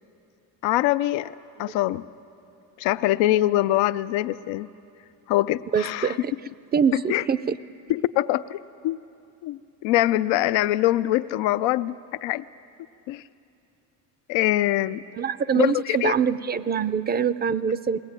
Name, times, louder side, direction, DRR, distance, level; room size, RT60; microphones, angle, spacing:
voice 1, 0.6-2.0 2.8-4.7 5.3-6.2 6.9-7.2 7.9-9.0 9.4-12.4 13.1-13.2 14.3-15.0 15.6-16.1, left 15 dB, 80° left, 13 dB, 0.5 m, -24 dB
voice 2, 5.7-6.3 6.7-7.6 15.2-18.0, right 7 dB, 25° right, 16 dB, 0.4 m, -24 dB
21.0 x 18.5 x 8.9 m, 2.7 s
cardioid pair, 100°, 44 cm